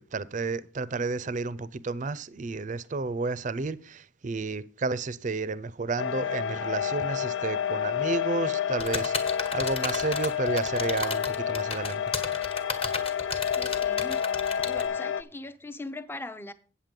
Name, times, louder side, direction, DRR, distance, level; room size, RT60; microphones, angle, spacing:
voice 1, 0.0-12.0, right 3 dB, 40° right, 0.5 m, -32 dB
sound 1, 6.0-15.2, left 8 dB, 90° left, 0.4 m, -29 dB
sound 2, 8.8-14.8, left 4 dB, 30° left, 1.2 m, -33 dB
voice 2, 13.6-14.2 14.6-16.5, left 2 dB, 10° left, 0.5 m, -40 dB
8.6 x 7.5 x 5.2 m
head